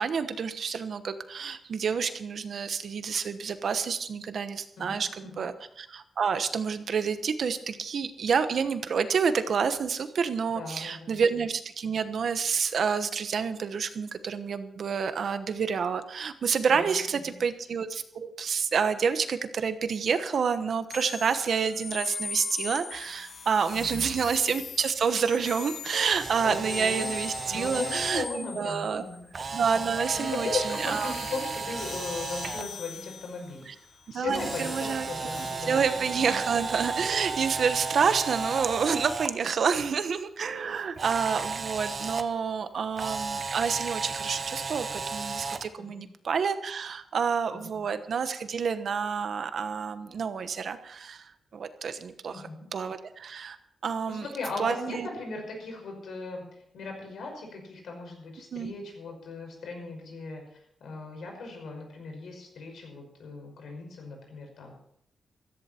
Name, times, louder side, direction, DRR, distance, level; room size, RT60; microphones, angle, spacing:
voice 1, 0.0-5.5 5.8-29.0 29.5-31.1 33.7-33.8 34.1-35.1 35.4-52.4 52.7-53.6 53.8-54.3 54.6-55.1 58.5-58.7, right 6 dB, 55° right, 10 dB, 1.1 m, -28 dB
voice 2, 4.8-5.4 10.5-11.2 16.7-17.4 23.7-24.1 26.4-27.1 27.5-29.3 30.2-33.7 34.1-36.4 45.8-46.0 47.5-47.8 52.3-52.6 54.1-56.4 56.7-60.4 60.8-64.7, left 3 dB, 75° left, 2 dB, 5.6 m, -38 dB
sound 1, 20.9-29.2 29.9-35.6, left 5 dB, 50° left, 1.4 m, -40 dB
Camera, 26.1-28.3 29.3-32.6 34.3-39.3 41.0-42.2 42.9-45.7, right 4 dB, 35° right, 0.9 m, -34 dB
16.0 x 14.5 x 4.4 m, 0.72 s
wide cardioid pair, 170°, 0 cm